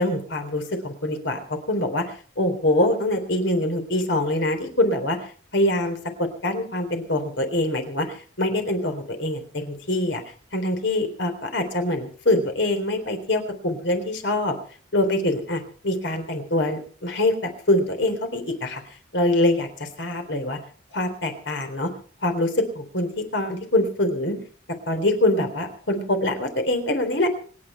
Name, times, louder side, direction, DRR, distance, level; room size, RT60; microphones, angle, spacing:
voice 1, 0.0-2.1 2.4-5.2 5.5-10.2 10.5-14.6 14.9-18.8 19.1-20.6 20.9-21.9 22.2-24.4 24.9-27.3, left 1 dB, 65° left, 6 dB, 3.7 m, -24 dB
26.0 x 9.9 x 4.4 m, 0.43 s
head